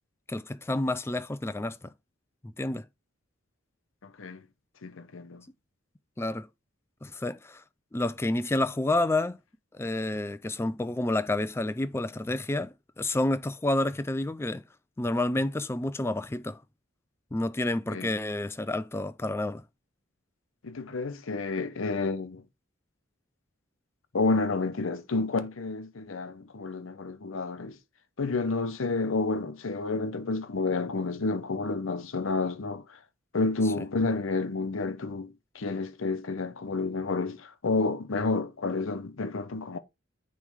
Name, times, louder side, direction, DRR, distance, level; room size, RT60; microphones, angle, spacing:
voice 1, 0.3-1.9 2.4-2.8 6.2-6.5 7.0-7.6 7.9-9.4 9.7-14.6 15.0-16.6 17.3-19.6, left 2 dB, 10° left, 0.3 m, -29 dB
voice 2, 4.0-4.4 4.8-5.5 17.9-18.1 20.6-22.4 24.1-27.8 28.2-33.0 33.3-39.8, left 3 dB, 80° left, 0.8 m, -30 dB
9.4 x 3.2 x 3.5 m
head